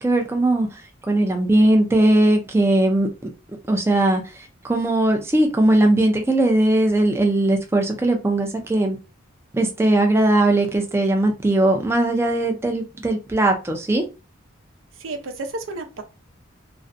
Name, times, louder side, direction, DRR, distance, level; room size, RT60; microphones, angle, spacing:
voice 1, 0.0-3.1 3.7-9.0 9.5-14.1, right 1 dB, 15° right, 0.3 m, -19 dB
voice 2, 14.9-16.0, right 2 dB, 90° right, 0.6 m, -31 dB
2.4 x 2.1 x 2.5 m
head